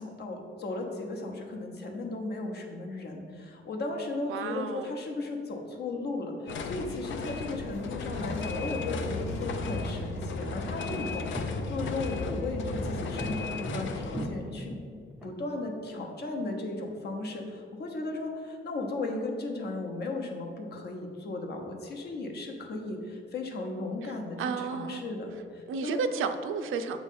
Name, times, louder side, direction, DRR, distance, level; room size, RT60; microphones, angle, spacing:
voice 1, 0.0-14.8 15.2-26.0, left 2 dB, 50° left, 3 dB, 0.9 m, -36 dB
voice 2, 4.3-5.0 24.0-25.0 25.7-27.0, right 5 dB, 80° right, 9 dB, 0.5 m, -32 dB
sound 1, 6.5-14.3, left 5 dB, 70° left, 0.5 m, -36 dB
sound 2, 7.6-13.6, left 1 dB, 30° left, 1.1 m, -38 dB
sound 3, 8.8-15.3, right 1 dB, 5° right, 0.4 m, -40 dB
7.3 x 3.1 x 5.4 m, 2.2 s
cardioid pair, 150°, 21 cm